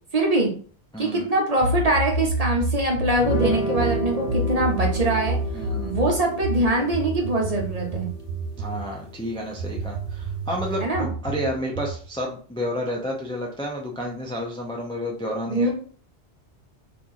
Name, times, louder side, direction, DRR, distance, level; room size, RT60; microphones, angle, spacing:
voice 1, 0.1-0.5 1.0-5.4 5.8-8.1 10.8-11.1 15.5-15.7, right 1 dB, 40° right, 0 dB, 0.8 m, -23 dB
voice 2, 0.9-1.3 5.5-5.9 8.6-15.7, equal, 5° left, -1 dB, 0.4 m, -30 dB
sound 1, 1.6-8.9 9.6-12.1, right 2 dB, 90° right, 0.9 m, -28 dB
sound 2, 3.1-10.9, equal, 65° left, 0.8 m, -33 dB
2.9 x 2.6 x 3.8 m, 0.43 s
omnidirectional pair, 1.1 m